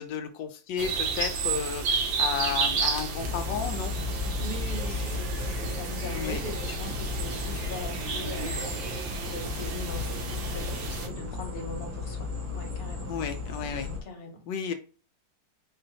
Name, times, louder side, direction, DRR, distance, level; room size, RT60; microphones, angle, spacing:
voice 1, 0.0-3.9 6.1-6.4 13.1-13.9 14.5-14.7, left 7 dB, 80° left, 1.3 m, -33 dB
sound 1, 0.8-11.1, right 4 dB, 90° right, 1.6 m, -32 dB
sound 2, 3.2-14.0, left 4 dB, 60° right, 1.5 m, -35 dB
voice 2, 4.1-13.1 14.0-14.5, left 2 dB, 40° left, 1.0 m, -41 dB
4.5 x 2.5 x 3.9 m
omnidirectional pair, 2.0 m